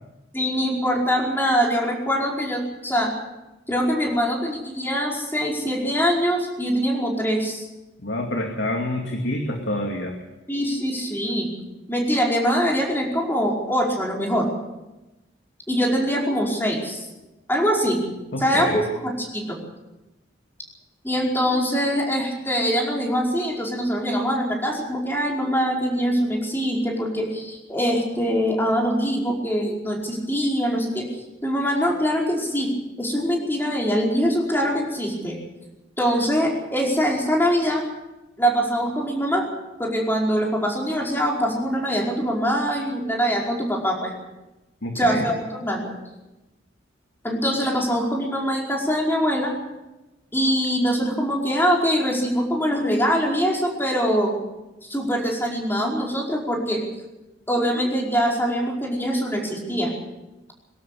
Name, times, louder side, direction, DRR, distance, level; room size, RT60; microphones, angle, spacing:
voice 1, 0.3-3.1 3.7-7.7 10.5-11.5 11.9-14.5 15.7-17.0 17.5-18.0 18.4-19.6 21.0-31.1 31.4-32.7 33.0-35.4 36.0-37.8 38.4-39.5 39.8-44.1 44.9-45.8 47.2-49.5 50.3-54.3 54.9-56.8 57.5-59.9, equal, 10° left, -1 dB, 5.0 m, -23 dB
voice 2, 8.0-10.2 18.3-18.8 44.8-45.3, left 1 dB, 65° left, 2 dB, 2.5 m, -27 dB
23.5 x 12.5 x 8.6 m, 1.0 s
head